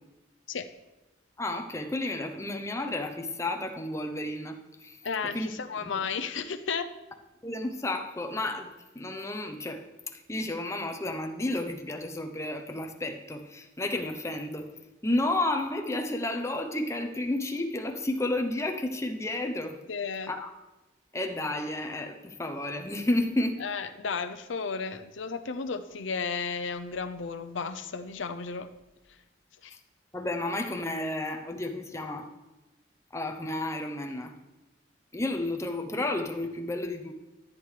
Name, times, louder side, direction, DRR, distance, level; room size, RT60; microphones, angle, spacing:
voice 1, 1.4-5.5 5.8-6.0 7.4-8.7 8.9-14.7 15.0-19.8 20.3-20.5 21.1-23.6 30.1-32.3 33.1-34.3 35.1-37.1, left 1 dB, 15° left, 5 dB, 0.7 m, -32 dB
voice 2, 5.0-6.9 19.9-20.3 23.6-28.7 29.6-29.8, left 5 dB, 80° left, 9 dB, 0.6 m, -33 dB
13.5 x 8.3 x 3.3 m, 1.1 s
head